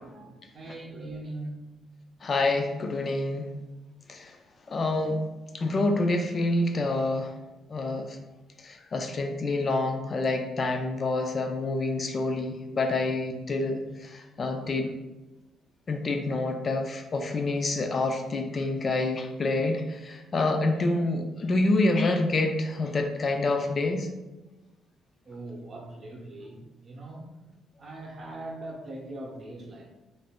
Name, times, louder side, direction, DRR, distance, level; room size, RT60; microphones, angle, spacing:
voice 1, 0.0-1.6 14.6-14.9 25.2-27.3 27.8-29.9, right 2 dB, 45° right, 0 dB, 0.6 m, -41 dB
voice 2, 2.2-3.5 4.1-4.4 4.7-5.2 5.5-7.3 7.7-8.2 8.6-14.9 15.9-24.1, left 2 dB, 40° left, 5 dB, 0.3 m, -27 dB
2.5 x 2.1 x 3.5 m, 1.1 s
cardioid pair, 95°, 0 cm